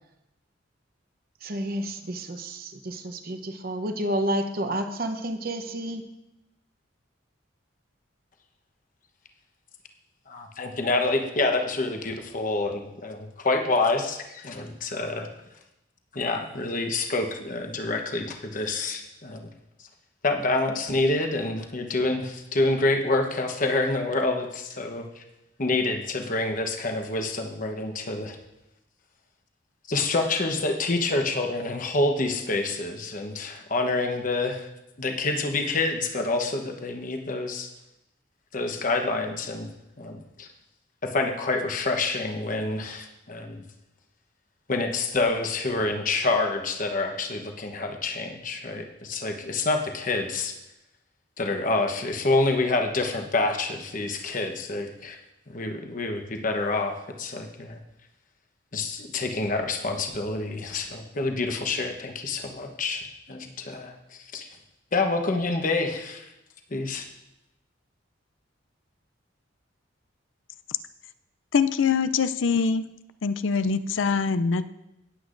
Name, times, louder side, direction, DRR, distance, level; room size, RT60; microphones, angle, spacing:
voice 1, 1.4-6.1, right 1 dB, 50° right, 8 dB, 0.8 m, -30 dB
voice 2, 10.3-15.3 16.1-19.5 20.2-25.2 25.6-28.4 29.9-34.7 35.0-37.7 38.5-39.7 40.0-40.5 41.0-43.6 44.7-50.5 51.4-55.2 55.5-57.8 58.7-63.9 64.3-64.5 64.9-66.3 66.7-67.1, left 2 dB, 45° left, 4 dB, 1.0 m, -27 dB
voice 3, 71.5-72.9 73.2-74.7, left 5 dB, 80° left, 13 dB, 0.5 m, -23 dB
18.0 x 8.1 x 2.6 m, 0.90 s
head